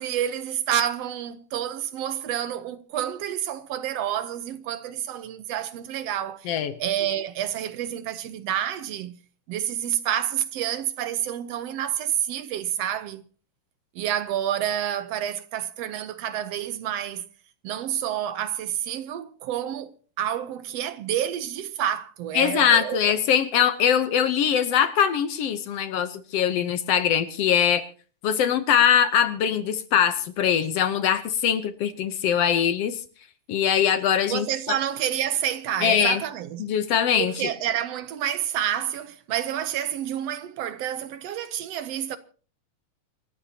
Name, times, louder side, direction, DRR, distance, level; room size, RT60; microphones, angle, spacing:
voice 1, 0.0-6.5 6.8-9.2 9.5-13.2 14.0-17.3 17.6-19.9 20.2-23.0 34.3-36.6 37.2-42.2, right 10 dB, 70° right, 1.7 m, -29 dB
voice 2, 22.4-27.8 28.2-33.0 33.5-34.8 35.8-36.2 36.6-37.5, left 8 dB, 65° left, 1.7 m, -22 dB
28.0 x 13.5 x 2.8 m
omnidirectional pair, 3.5 m